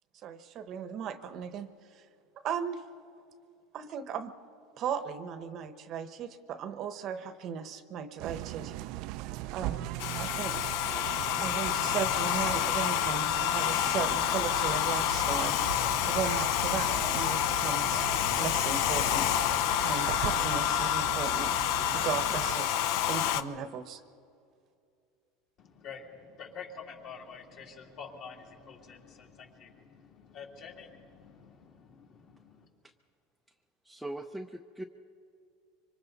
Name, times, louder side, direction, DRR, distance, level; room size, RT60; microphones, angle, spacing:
voice 1, 0.2-2.0 2.4-2.8 3.7-4.3 4.8-8.7 9.5-9.9 10.2-10.6 11.4-15.6 16.1-18.0 18.4-19.3 19.8-21.5 21.9-24.0, right 7 dB, 40° right, 11 dB, 0.9 m, -36 dB
sound 1, 8.2-22.6, right 16 dB, 55° right, 0.4 m, -40 dB
Domestic sounds home sounds, 10.0-23.4, left 11 dB, 60° left, 0.7 m, -28 dB
voice 2, 25.6-32.7, left 6 dB, 40° left, 1 dB, 2.7 m, -48 dB
voice 3, 33.8-34.8, right 1 dB, ahead, 4 dB, 0.5 m, -40 dB
25.5 x 25.0 x 4.0 m, 2.5 s
supercardioid pair, 150°, 0 cm